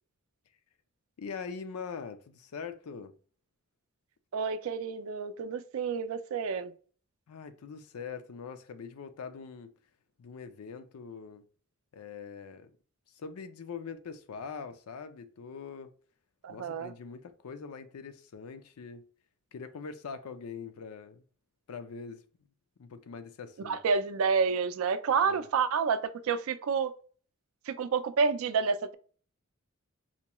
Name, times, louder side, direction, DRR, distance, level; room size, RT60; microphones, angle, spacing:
voice 1, 1.2-3.1 7.3-9.7 10.2-11.4 11.9-12.7 13.1-15.9 16.5-19.0 19.5-21.2 21.7-22.2 22.8-23.8 25.1-25.4, left 5 dB, 85° left, 0.4 m, -43 dB
voice 2, 4.3-6.7 16.4-16.9 23.6-26.9 27.7-28.9, right 5 dB, 70° right, 0.3 m, -29 dB
4.3 x 2.3 x 2.9 m
head